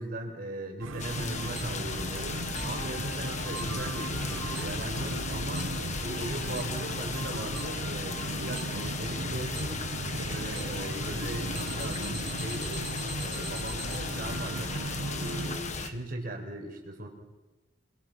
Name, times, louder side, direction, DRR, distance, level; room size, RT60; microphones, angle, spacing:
voice 1, 0.0-2.4 2.6-5.7 6.0-9.8 10.2-12.7 13.2-14.8 15.1-17.1, right 1 dB, 45° right, 2 dB, 5.6 m, -38 dB
sound 1, 0.8-15.6, right 2 dB, 75° right, 1.1 m, -37 dB
sound 2, 1.0-15.9, left 4 dB, 35° left, 1.6 m, -36 dB
Alarm, 1.6-1.7 2.6-2.7 3.6-3.7 4.6-4.7 5.6-5.7 6.6-6.7 7.6-7.7 8.6-8.7 9.6-9.7 10.6-10.7 11.6-14.0, right 3 dB, 25° right, 4.9 m, -42 dB
28.0 x 24.0 x 5.8 m, 1.1 s
head